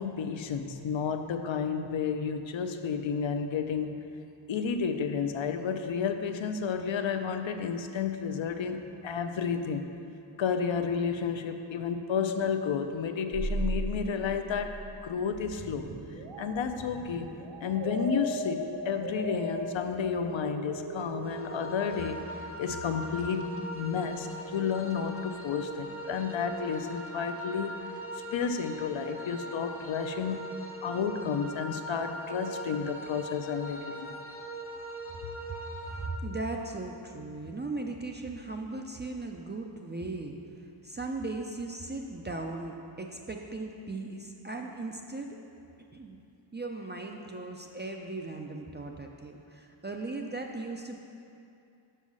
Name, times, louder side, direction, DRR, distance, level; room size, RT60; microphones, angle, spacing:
voice 1, 0.0-3.9 4.5-9.9 10.4-15.9 16.4-17.3 17.6-22.2 22.6-23.5 23.7-27.8 28.1-30.4 30.8-34.2, left 6 dB, 70° left, 7 dB, 0.6 m, -31 dB
sound 1, 13.3-22.0, right 2 dB, 65° right, 0.7 m, -37 dB
sound 2, 21.2-36.1, right 1 dB, 30° left, 0.6 m, -41 dB
voice 2, 35.9-40.3 40.8-45.3 45.9-46.2 46.5-51.0, right 2 dB, 25° right, 2 dB, 0.3 m, -37 dB
5.5 x 5.3 x 6.1 m, 2.6 s
wide cardioid pair, 130°, 49 cm